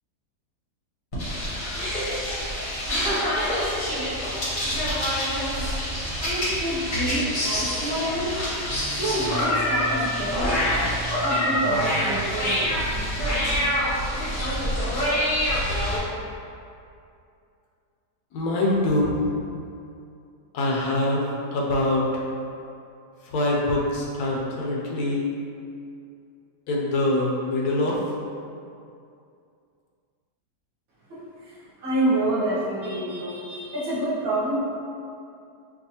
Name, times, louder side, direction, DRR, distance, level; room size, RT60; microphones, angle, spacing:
sound 1, 1.1-16.0, equal, 40° left, 0.8 m, -26 dB
sound 2, 4.6-13.8, right 3 dB, 85° right, 1.2 m, -38 dB
voice 1, 6.2-8.5 9.0-10.6 11.2-12.8 31.1-34.6, right 1 dB, 60° right, -8 dB, 1.1 m, -28 dB
voice 2, 18.3-19.2 20.5-22.2 23.2-25.2 26.7-28.0, left 1 dB, 75° left, -3 dB, 1.1 m, -24 dB
4.6 x 2.4 x 2.8 m, 2.5 s
omnidirectional pair, 1.8 m